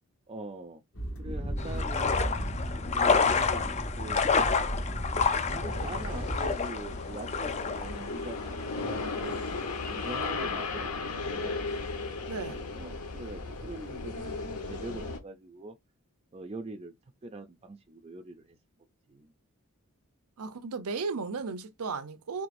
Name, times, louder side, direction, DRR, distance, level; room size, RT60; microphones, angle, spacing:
voice 1, 0.3-0.8 1.2-2.2 2.9-3.7 4.0-4.2 5.1-9.3 9.9-11.7 12.7-15.7 16.3-16.9 17.2-18.6 19.1-19.3, right 2 dB, 25° right, 0.4 m, -43 dB
sound 1, 0.9-6.5, equal, 65° left, 1.6 m, -35 dB
sound 2, 1.6-10.3, left 5 dB, 30° left, 0.5 m, -30 dB
sound 3, 5.6-15.2, left 3 dB, 90° left, 1.1 m, -36 dB
voice 2, 12.3-12.6 20.4-22.5, right 4 dB, 85° right, 0.6 m, -35 dB
4.6 x 3.3 x 2.5 m
head